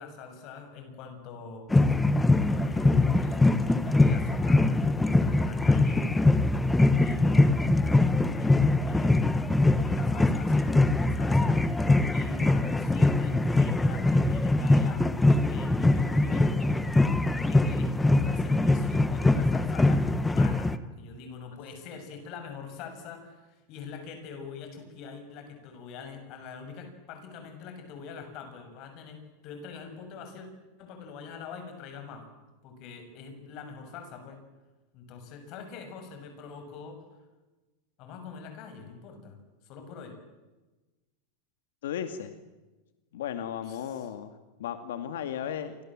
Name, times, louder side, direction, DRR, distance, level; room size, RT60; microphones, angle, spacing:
voice 1, 0.0-2.2 2.5-6.1 7.0-11.6 12.1-16.8 17.4-30.5 30.8-32.3 32.6-34.4 34.9-37.0 38.0-39.4 39.6-40.2 43.7-43.8, left 5 dB, 35° left, 6 dB, 6.9 m, -43 dB
sound 1, 1.7-20.8, left 2 dB, 5° left, 1.0 m, -23 dB
voice 2, 41.8-42.3 43.1-45.8, left 9 dB, 80° left, 8 dB, 2.3 m, -35 dB
29.0 x 25.5 x 7.7 m, 1.1 s
supercardioid pair, 175°, 0 cm